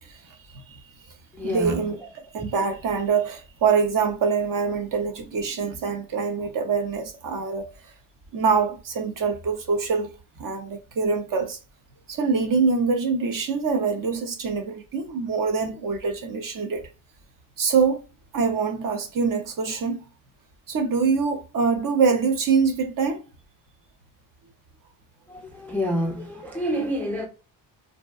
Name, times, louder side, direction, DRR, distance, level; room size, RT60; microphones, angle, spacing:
voice 1, 0.0-0.8 1.4-2.0 2.3-7.7 8.3-10.1 10.4-11.6 12.1-16.8 17.6-18.0 18.3-20.0 20.7-23.2, right 5 dB, 40° right, 0.7 m, -24 dB
voice 2, 1.4-1.8 25.3-27.3, equal, 5° left, 0.3 m, -28 dB
2.7 x 2.1 x 2.3 m
supercardioid pair, 75°, 49 cm